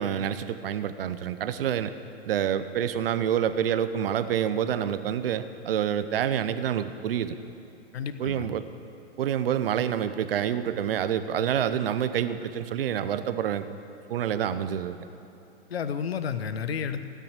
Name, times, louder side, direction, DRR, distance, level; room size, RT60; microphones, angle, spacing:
voice 1, 0.0-1.9 2.3-7.3 8.2-8.6 9.2-13.6 14.1-15.0, right 9 dB, 60° right, 12 dB, 0.9 m, -27 dB
voice 2, 7.9-8.5 15.7-17.0, left 7 dB, 70° left, 10 dB, 1.1 m, -31 dB
16.5 x 10.0 x 8.3 m, 2.7 s
figure-of-eight pair, 105°, 32 cm